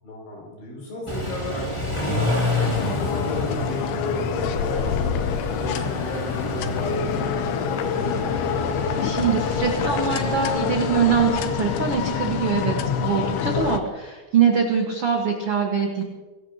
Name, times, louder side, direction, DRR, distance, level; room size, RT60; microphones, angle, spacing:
voice 1, 0.0-8.4, left 2 dB, 60° left, -2 dB, 8.5 m, -34 dB
Car / Idling / Accelerating revving vroom, 1.1-13.4, left 2 dB, 10° left, 1.6 m, -30 dB
sound 1, 2.6-13.8, left 7 dB, 80° left, 3.3 m, -26 dB
voice 2, 9.0-12.8 13.0-16.0, right 7 dB, 80° right, 0 dB, 1.2 m, -23 dB
24.0 x 18.0 x 3.0 m, 1.3 s
omnidirectional pair, 5.4 m